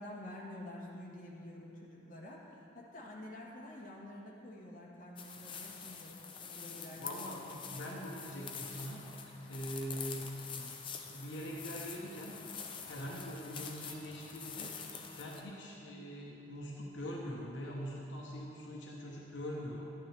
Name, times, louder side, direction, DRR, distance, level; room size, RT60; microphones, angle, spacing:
voice 1, 0.0-6.1 6.4-7.6, left 1 dB, 45° left, -4 dB, 1.5 m, -49 dB
sound 1, 5.2-15.4, left 6 dB, 25° left, 0.6 m, -46 dB
voice 2, 7.0-9.1 9.5-10.8 11.1-12.4 12.8-14.8 15.2-19.8, equal, 75° left, -3 dB, 1.0 m, -43 dB
11.5 x 9.3 x 3.4 m, 2.9 s
head